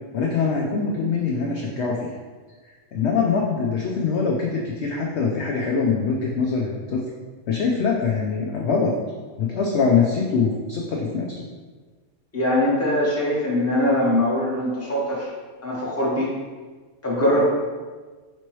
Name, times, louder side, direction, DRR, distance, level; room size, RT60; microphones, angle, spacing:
voice 1, 0.1-2.1 2.9-7.0 7.5-8.9 9.4-11.4, left 5 dB, 65° left, -1 dB, 0.7 m, -23 dB
voice 2, 12.3-15.3 15.6-16.3 17.0-17.4, left 1 dB, 15° left, -6 dB, 0.8 m, -22 dB
5.3 x 2.9 x 3.0 m, 1.4 s
omnidirectional pair, 1.5 m